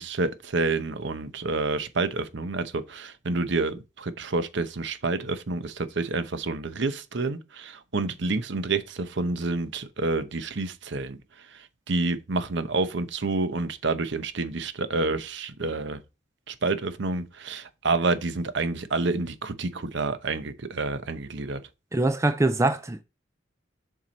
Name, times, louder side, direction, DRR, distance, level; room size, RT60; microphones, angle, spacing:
voice 1, 0.0-11.2 11.9-16.0 16.5-21.6, right 3 dB, 65° right, 0.8 m, -28 dB
voice 2, 21.9-23.0, right 2 dB, 15° right, 0.5 m, -23 dB
7.5 x 4.6 x 4.0 m
head